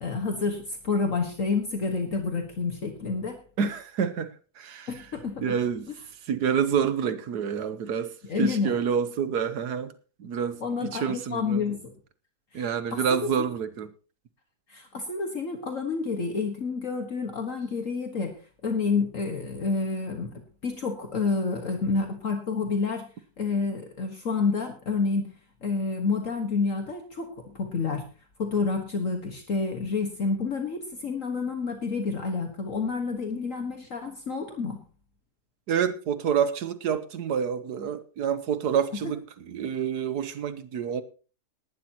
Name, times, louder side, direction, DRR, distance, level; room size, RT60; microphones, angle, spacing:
voice 1, 0.0-3.4 4.9-5.6 8.2-8.7 10.6-11.9 12.5-13.3 14.7-18.4 18.6-23.1 23.4-25.3 25.6-28.0 28.4-34.8 39.0-39.1, left 4 dB, 55° left, 1.8 m, -29 dB
voice 2, 3.6-4.9 5.4-5.9 6.3-9.9 10.2-11.6 12.5-13.9 35.7-41.0, right 7 dB, 80° right, 1.5 m, -28 dB
18.0 x 12.0 x 2.9 m
omnidirectional pair, 1.7 m